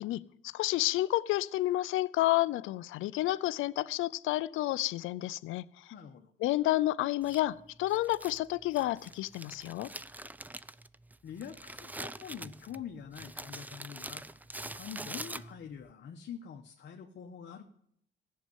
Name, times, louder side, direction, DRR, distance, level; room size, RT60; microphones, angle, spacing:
voice 1, 0.0-5.7 6.4-9.9, left 16 dB, 85° left, 16 dB, 0.5 m, -30 dB
voice 2, 5.9-6.3 11.2-14.2 14.6-17.6, left 8 dB, 65° left, 3 dB, 1.2 m, -45 dB
Crumpling crinkling, 7.2-15.8, right 2 dB, 10° right, 0.4 m, -45 dB
15.0 x 6.7 x 9.3 m, 0.68 s
cardioid pair, 90°, 20 cm